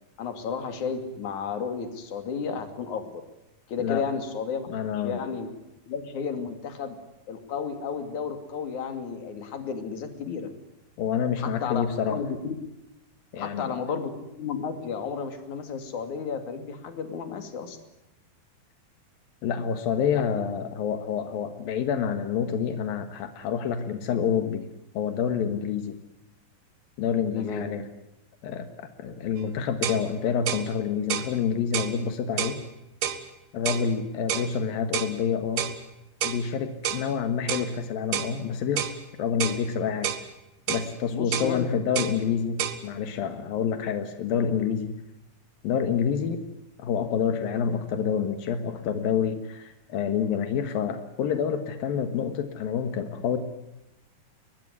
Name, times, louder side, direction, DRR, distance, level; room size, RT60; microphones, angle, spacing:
voice 1, 0.2-3.2 3.7-4.7 4.9-5.5 5.9-7.0 7.3-10.5 11.4-12.6 13.4-17.8 27.4-27.7 41.1-41.8, left 6 dB, 60° left, 7 dB, 3.9 m, -33 dB
voice 2, 4.7-5.2 11.0-12.2 13.3-13.8 19.4-24.7 24.9-25.9 27.0-27.8 28.4-32.6 33.5-35.7 36.2-40.1 40.7-44.9 45.6-46.4 46.8-53.4, left 7 dB, 85° left, 8 dB, 3.3 m, -28 dB
sound 1, 29.4-29.5 29.8-30.0 30.5-30.7 31.1-31.3 31.7-32.0 32.4-32.6 33.0-33.2 33.7-33.9 34.3-34.5 34.9-35.1 35.6-35.8 36.2-36.4 36.8-37.1 37.5-37.7 38.1-38.3 38.8-39.0 39.4-39.6 40.0-40.3 40.7-40.9 41.3-41.5 42.0-42.2 42.6-42.8, right 10 dB, 70° right, 3.1 m, -29 dB
22.0 x 21.5 x 9.7 m, 0.88 s
omnidirectional pair, 4.0 m